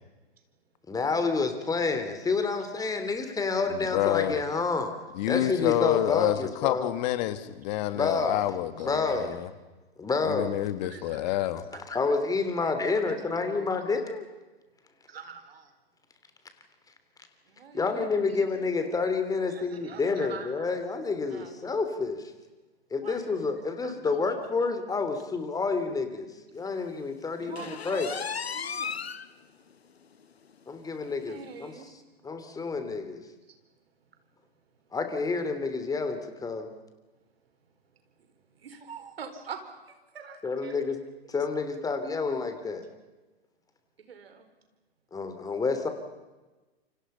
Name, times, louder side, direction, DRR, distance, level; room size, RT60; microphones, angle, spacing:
voice 1, 0.9-4.9 5.3-6.9 7.9-8.4 8.8-9.4 10.0-10.6 11.9-14.3 17.7-22.2 22.9-28.1 30.7-31.7 32.2-33.2 34.9-36.7 40.4-40.9 41.3-42.8 45.1-45.9, left 4 dB, 10° left, 8 dB, 3.1 m, -29 dB
voice 2, 3.7-4.4 5.1-9.5 10.2-11.6, left 14 dB, 45° left, 12 dB, 2.1 m, -28 dB
voice 3, 8.8-9.3 10.8-11.3 11.7-11.8 12.6-13.7 15.1-15.7 17.4-18.5 19.5-20.7 21.3-21.6 23.0-23.3 23.8-24.2 27.4-29.0 31.0-32.0 33.5-33.6 38.2-41.0 44.0-44.5, right 6 dB, 70° right, 8 dB, 4.5 m, -45 dB
sound 1, 27.6-29.3 29.7-29.8 30.2-30.3 30.7-30.8 31.8-31.9, left 6 dB, 80° left, 1.2 m, -35 dB
28.5 x 25.5 x 5.7 m, 1.2 s
figure-of-eight pair, 110°, 31 cm